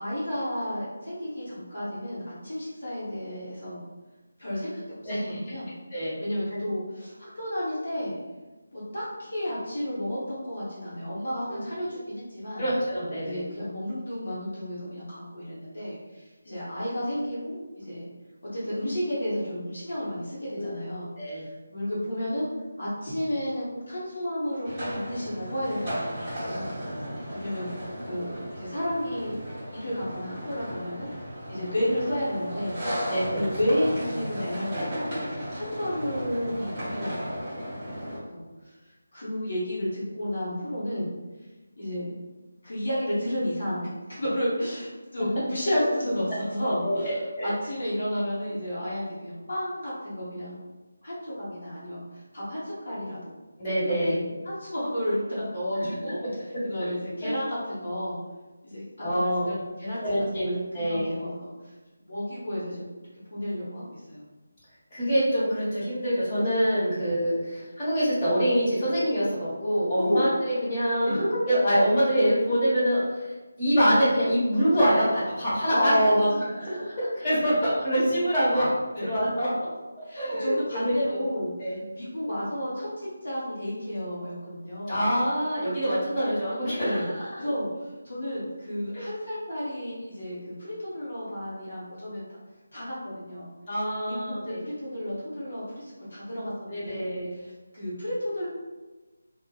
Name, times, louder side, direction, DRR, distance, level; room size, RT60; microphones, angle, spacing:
voice 1, 0.0-3.8 4.4-5.7 6.2-8.2 8.7-12.7 13.2-18.1 18.5-21.1 21.7-22.5 22.8-26.7 27.3-31.1 31.5-32.8 33.3-35.1 35.5-37.9 38.3-38.7 39.1-41.1 41.8-42.1 42.6-43.9 44.2-50.6 51.0-53.3 53.9-56.2 56.6-58.2 58.6-58.8 59.1-60.0 60.7-61.5 62.1-62.9 63.3-64.3 66.9-67.1 70.0-70.3 71.0-71.2 75.7-76.4 79.0-79.1 80.0-81.5 81.9-85.0 86.8-87.1 87.4-92.2 92.7-93.5 94.1-98.5, equal, 60° left, -8 dB, 0.9 m, -31 dB
voice 2, 5.0-5.4 5.9-6.1 11.5-11.9 12.6-13.4 20.5-20.8 21.2-21.4 33.1-33.4 46.8-47.5 53.6-54.2 56.8-56.9 59.0-59.5 60.0-61.1 64.9-73.3 73.6-76.2 76.7-78.7 79.0-79.5 80.1-81.2 81.6-81.8 84.9-87.4 88.9-89.1 93.7-94.6 96.7-97.3, equal, 20° left, -12 dB, 1.4 m, -25 dB
sound 1, 24.6-38.2, equal, 25° right, 1.1 m, -35 dB
2.5 x 2.1 x 2.4 m, 1.2 s
figure-of-eight pair, 160°, 0 cm